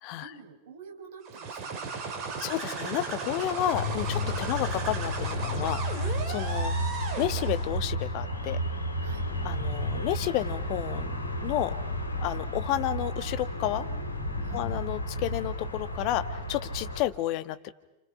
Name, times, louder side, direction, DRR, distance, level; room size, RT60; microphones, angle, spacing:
voice 1, 0.2-2.0 9.0-9.3 14.4-14.6, right 5 dB, 55° right, 2 dB, 5.1 m, -49 dB
sound 1, 1.2-7.8, right 4 dB, 35° right, 5.4 m, -35 dB
voice 2, 2.4-6.7 7.2-8.6 9.4-11.1 11.4-11.8 12.2-13.9 14.5-17.7, left 13 dB, 45° left, 12 dB, 1.4 m, -31 dB
sound 2, 3.7-17.0, left 1 dB, 80° left, 3.3 m, -32 dB
30.0 x 28.5 x 5.2 m, 0.96 s
figure-of-eight pair, 90°, 0 cm